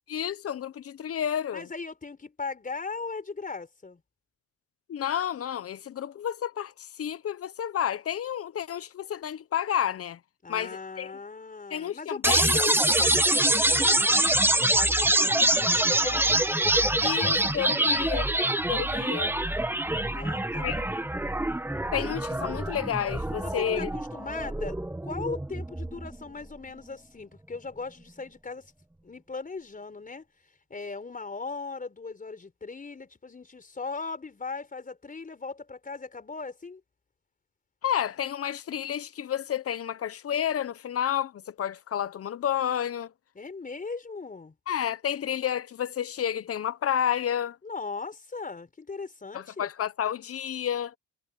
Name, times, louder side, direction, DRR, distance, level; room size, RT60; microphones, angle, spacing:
voice 1, 0.1-1.7 4.9-10.2 10.5-11.1 11.7-12.6 17.0-18.3 18.7-19.3 20.6-20.8 21.9-23.9 37.8-43.1 44.7-47.6 49.3-50.9, left 9 dB, 50° left, 1.0 m, -30 dB
voice 2, 1.5-4.0 10.4-13.1 13.5-16.4 20.1-20.7 23.4-24.8 25.0-28.7 29.0-30.2 30.7-36.8 43.3-44.5 47.6-49.7, left 4 dB, 25° left, 4.9 m, -38 dB
sound 1, 12.2-26.2, right 1 dB, 5° right, 1.4 m, -25 dB
cardioid pair, 90°, 30 cm